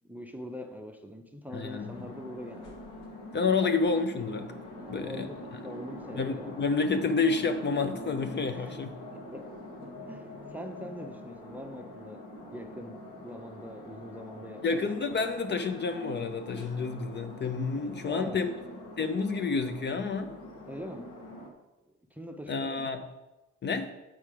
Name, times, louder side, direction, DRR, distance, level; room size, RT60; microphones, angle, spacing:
voice 1, 0.0-2.8 3.6-3.7 4.8-6.5 8.5-8.8 9.1-14.8 15.0-15.3 18.0-18.5 20.7-21.2 22.1-22.9, equal, 5° right, 5 dB, 0.6 m, -43 dB
sound 1, 1.5-21.5, left 1 dB, 85° left, 1.6 m, -44 dB
voice 2, 1.5-1.9 3.3-4.5 4.9-5.3 6.2-8.9 14.6-18.5 19.0-20.3 22.5-23.0 23.6-23.9, left 4 dB, 35° left, 8 dB, 0.5 m, -29 dB
7.3 x 4.6 x 4.8 m, 1.1 s
cardioid pair, 90°, 30 cm